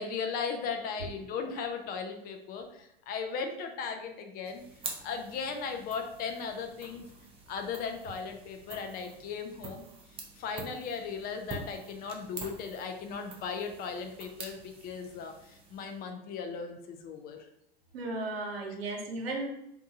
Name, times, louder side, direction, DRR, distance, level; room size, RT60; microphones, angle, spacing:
voice 1, 0.0-4.6 5.0-7.1 7.5-9.8 10.4-17.5, left 5 dB, 30° left, 5 dB, 0.4 m, -37 dB
sound 1, 4.4-16.1, right 3 dB, 20° right, 0.5 m, -47 dB
voice 2, 17.9-19.5, right 2 dB, 80° right, 0 dB, 0.8 m, -35 dB
2.7 x 2.2 x 2.7 m, 0.78 s
hypercardioid pair, 90°, 30 cm